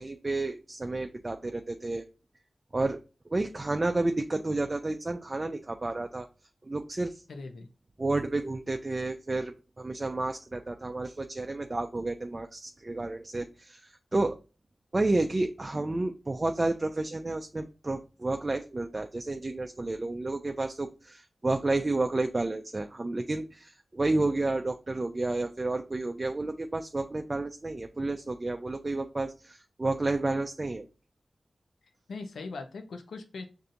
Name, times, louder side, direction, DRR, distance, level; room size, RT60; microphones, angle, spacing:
voice 1, 0.0-2.1 2.7-3.0 3.3-6.3 6.6-7.2 8.0-14.4 14.9-30.8, right 2 dB, 40° right, 5 dB, 0.4 m, -31 dB
voice 2, 7.3-7.7 32.1-33.5, left 3 dB, 90° left, 5 dB, 0.5 m, -40 dB
5.5 x 2.6 x 2.6 m, 0.32 s
cardioid pair, 40°, 0 cm